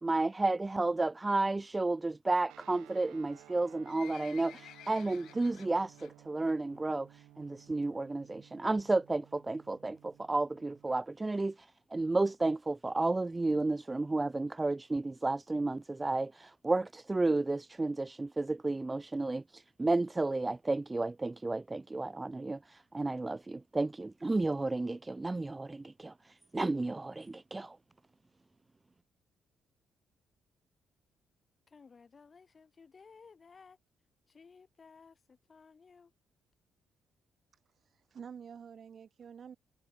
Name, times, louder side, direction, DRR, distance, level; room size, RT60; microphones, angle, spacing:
voice 1, 0.0-27.8, right 2 dB, 20° right, 0.4 m, -32 dB
Guitar, 2.5-11.0, right 15 dB, 90° right, 2.5 m, -58 dB
Livestock farm animals working animals, 3.5-6.1 6.5-6.8 7.1-7.2 7.9-8.0 8.2-8.3 8.5-8.6 9.1-9.4 10.0-10.1 10.3-10.4 10.6-10.7 10.9-11.0 11.4-11.5 12.0-12.1 12.6-12.7, left 12 dB, 75° left, 1.1 m, -53 dB
voice 2, 31.7-33.8 34.3-36.1, left 5 dB, 35° left, 7.1 m, -57 dB
voice 3, 37.5-39.6, right 7 dB, 50° right, 2.0 m, -49 dB
cardioid pair, 90°, 0 cm